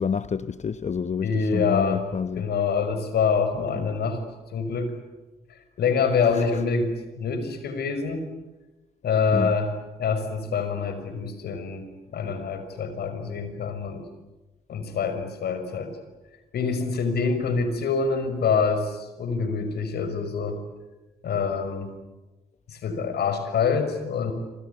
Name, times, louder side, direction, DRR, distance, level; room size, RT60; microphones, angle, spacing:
voice 1, 0.0-2.5 3.8-3.9 6.3-6.5 9.3-9.6, left 6 dB, 40° left, 1.0 m, -29 dB
voice 2, 1.2-2.0 2.4-4.2 4.5-5.0 5.5-8.3 9.0-9.7 10.0-11.8 12.1-14.0 14.7-16.0 16.5-20.6 21.2-21.9 22.7-24.3, left 5 dB, 70° left, 5.8 m, -26 dB
27.0 x 26.5 x 8.4 m
hypercardioid pair, 50°, 18 cm